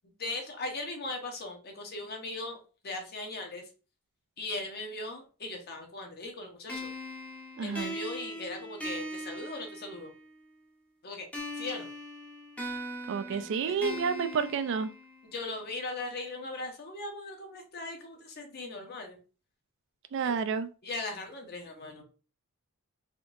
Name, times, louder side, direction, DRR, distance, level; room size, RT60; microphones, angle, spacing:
voice 1, 0.2-2.6 2.8-3.6 4.4-6.9 7.6-10.1 11.0-11.3 11.6-11.9 13.3-14.0 15.3-19.2 20.2-20.3 20.8-22.0, left 2 dB, 45° left, 3 dB, 0.8 m, -39 dB
sound 1, 6.7-10.3 11.3-15.3, equal, 5° left, 0.6 m, -40 dB
voice 2, 7.6-7.9 13.1-14.9 20.1-20.7, right 6 dB, 60° right, 11 dB, 0.3 m, -30 dB
3.6 x 2.7 x 2.5 m, 0.36 s
head